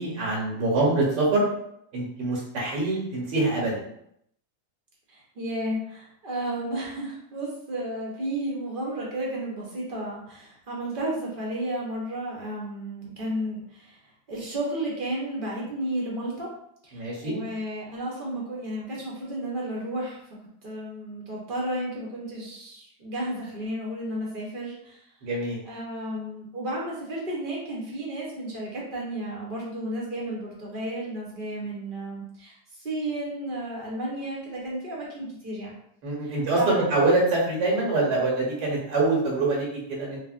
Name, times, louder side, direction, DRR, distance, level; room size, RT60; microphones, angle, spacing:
voice 1, 0.0-1.4 1.9-3.8 16.9-17.3 25.2-25.6 36.0-40.2, right 2 dB, 90° right, -4 dB, 1.5 m, -25 dB
voice 2, 5.1-14.0 14.3-16.5 16.8-20.2 20.6-25.0 25.6-35.8 36.2-36.8, right 1 dB, 50° right, -4 dB, 0.6 m, -33 dB
3.8 x 2.0 x 2.4 m, 0.73 s
omnidirectional pair, 1.8 m